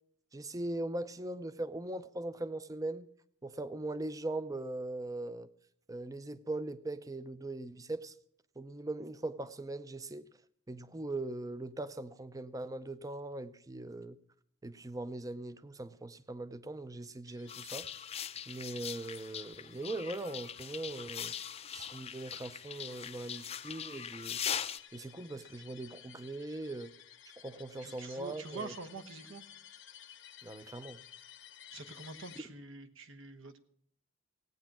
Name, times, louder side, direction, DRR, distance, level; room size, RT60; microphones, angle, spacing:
voice 1, 0.3-3.1 3.4-5.5 5.9-8.1 8.6-10.2 10.7-14.2 14.6-17.9 18.5-21.3 21.7-24.4 24.9-26.9 27.4-28.7 30.4-31.0, right 2 dB, 15° right, 0.5 m, -40 dB
sound 1, 17.3-32.4, left 10 dB, 60° left, 0.9 m, -56 dB
sound 2, 17.5-24.8, left 8 dB, 30° left, 0.5 m, -41 dB
voice 2, 27.8-29.4 31.7-33.6, right 3 dB, 70° right, 1.2 m, -46 dB
16.0 x 9.1 x 7.3 m
head